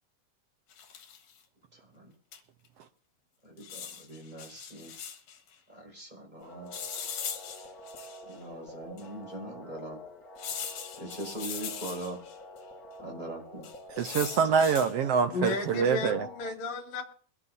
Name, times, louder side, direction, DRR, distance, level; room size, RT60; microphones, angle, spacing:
sound 1, 0.7-1.3 2.3-2.4 2.7-2.8 3.6-5.4 6.7-8.3 9.0-9.1 10.4-12.4 13.6-14.9 15.5-15.8, left 7 dB, 80° left, 3.3 m, -40 dB
voice 1, 1.7-2.1 3.4-4.9 5.7-6.7 8.2-10.0 11.0-12.2 13.0-13.7, right 2 dB, 10° right, 5.6 m, -41 dB
sound 2, 6.4-16.5, left 1 dB, 30° left, 2.3 m, -47 dB
voice 2, 14.0-16.3, right 6 dB, 90° right, 1.3 m, -25 dB
voice 3, 15.3-17.0, left 3 dB, 60° left, 3.2 m, -33 dB
23.0 x 12.0 x 2.7 m
omnidirectional pair, 3.8 m